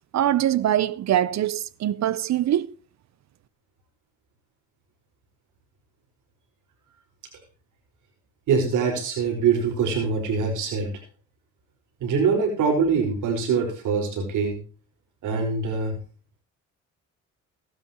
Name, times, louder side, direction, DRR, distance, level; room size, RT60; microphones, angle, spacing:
voice 1, 0.1-2.7, right 11 dB, 65° right, 0.9 m, -23 dB
voice 2, 8.5-10.9 12.0-14.6 15.2-16.0, right 5 dB, 80° right, 5.4 m, -23 dB
18.0 x 12.5 x 3.1 m
cardioid pair, 90°, 30 cm